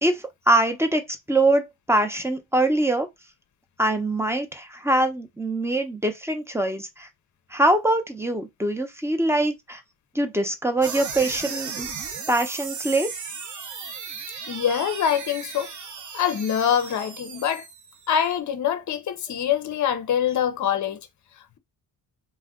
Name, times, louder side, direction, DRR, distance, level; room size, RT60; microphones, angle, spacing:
voice 1, 0.0-3.1 3.8-7.1 7.5-9.8 10.1-11.9 12.3-13.1, right 1 dB, 5° right, 0.6 m, -23 dB
sound 1, 10.8-18.3, right 6 dB, 45° right, 0.7 m, -36 dB
voice 2, 14.5-15.7 16.1-17.7 18.1-21.0, left 9 dB, 45° left, 0.6 m, -24 dB
2.4 x 2.2 x 3.6 m
cardioid pair, 80°, 41 cm